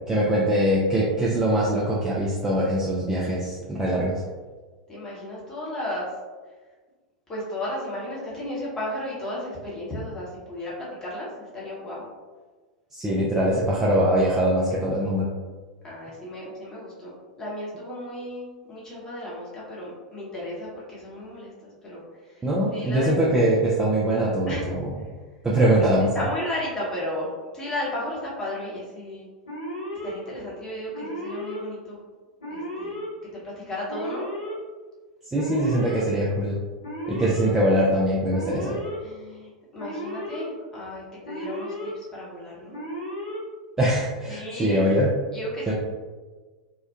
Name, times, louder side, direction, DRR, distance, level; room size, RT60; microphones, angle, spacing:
voice 1, 0.1-4.2 12.9-15.3 22.4-24.9 25.4-26.1 35.3-36.6 37.1-38.8 43.8-45.1 45.7-45.8, right 1 dB, 10° right, -6 dB, 0.4 m, -22 dB
voice 2, 4.9-6.1 7.3-12.0 15.8-22.0 22.3-22.4 22.7-23.1 24.5-24.7 25.6-25.8 26.1-29.3 30.0-32.0 32.5-33.0 33.3-34.3 39.0-42.8 44.3-44.9 45.3-45.7, left 1 dB, 15° left, -7 dB, 0.8 m, -34 dB
Alarm, 29.5-30.1 30.9-31.6 32.4-33.1 33.9-34.5 35.3-36.0 36.8-37.5 38.3-39.0 39.8-40.4 41.2-41.9 42.7-43.4, equal, 70° left, 1.1 m, -34 dB
2.8 x 2.1 x 2.3 m, 1.4 s
figure-of-eight pair, 90°, 4 cm